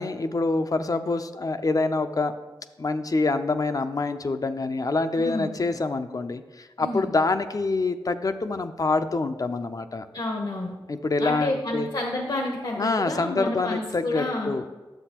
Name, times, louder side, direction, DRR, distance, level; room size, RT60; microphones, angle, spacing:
voice 1, 0.0-2.3 2.8-10.1 10.9-11.9 12.8-14.6, left 3 dB, 45° left, 9 dB, 0.5 m, -26 dB
voice 2, 5.2-5.5 6.8-7.1 10.1-10.7 11.2-14.5, left 2 dB, 60° left, 1 dB, 0.9 m, -29 dB
10.0 x 7.3 x 2.9 m, 1.2 s
cardioid pair, 55°, 8 cm